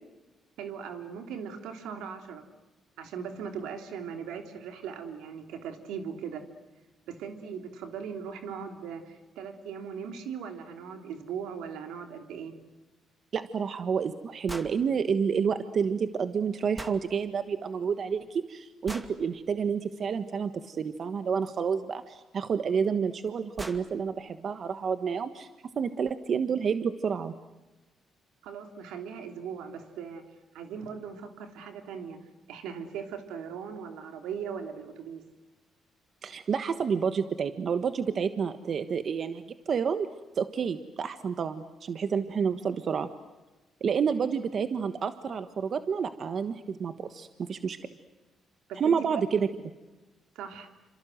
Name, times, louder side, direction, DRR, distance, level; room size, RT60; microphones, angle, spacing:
voice 1, 0.6-2.5 3.0-6.4 7.1-12.5 28.4-30.2 30.5-32.2 32.5-35.2 48.7-49.0 50.3-50.7, right 7 dB, 90° right, 5 dB, 3.2 m, -39 dB
voice 2, 13.3-25.5 25.7-27.3 36.2-40.1 40.3-43.1 43.8-47.8 48.8-49.5, right 6 dB, 55° right, 10 dB, 1.3 m, -29 dB
sound 1, 14.5-14.8 16.8-17.0 18.9-19.2 21.4-21.5 22.8-22.9 23.3-23.4 23.6-23.9, right 1 dB, 15° right, 2.5 m, -39 dB
28.5 x 26.5 x 7.9 m, 1.1 s
cardioid pair, 90°, 0 cm